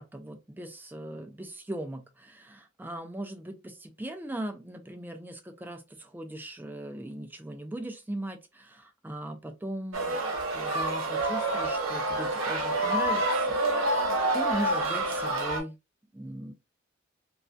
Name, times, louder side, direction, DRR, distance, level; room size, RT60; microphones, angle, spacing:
voice 1, 0.0-10.2 10.5-15.8 16.1-16.5, right 1 dB, 10° right, 0.4 m, -39 dB
sound 1, 9.9-15.6, right 2 dB, 85° right, 0.8 m, -28 dB
2.3 x 2.2 x 2.5 m
head